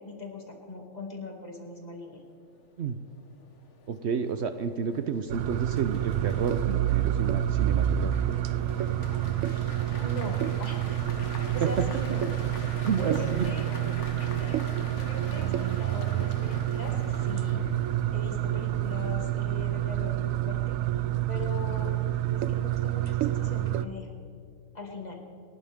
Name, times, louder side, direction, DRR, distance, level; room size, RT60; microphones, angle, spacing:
voice 1, 0.0-2.2 9.4-9.7 10.0-11.0 11.5-12.3 13.0-13.7 14.2-14.6 14.9-16.9 17.2-17.7 18.1-20.8 21.3-21.9 22.3-24.1 24.7-25.2, left 2 dB, 30° left, 0 dB, 2.5 m, -40 dB
sound 1, 2.4-20.6, left 4 dB, 65° left, 1.5 m, -46 dB
voice 2, 3.9-8.4 11.6-11.7 12.8-13.5, right 6 dB, 60° right, 9 dB, 0.9 m, -31 dB
sound 2, 5.3-23.9, right 12 dB, 85° right, 1.0 m, -28 dB
29.0 x 12.0 x 3.6 m, 2.5 s
omnidirectional pair, 1.4 m